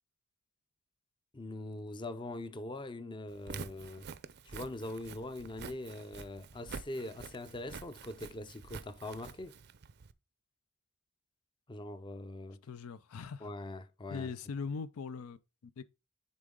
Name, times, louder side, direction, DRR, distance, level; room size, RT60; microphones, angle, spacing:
voice 1, 1.3-4.1 4.4-9.6 11.7-12.6 13.4-14.3, left 1 dB, 20° left, 0.5 m, -42 dB
Walk footsteps, 3.3-10.1, right 5 dB, 50° right, 0.5 m, -48 dB
voice 2, 12.6-13.5 14.1-15.8, left 5 dB, 80° left, 0.4 m, -41 dB
9.9 x 3.9 x 3.6 m
head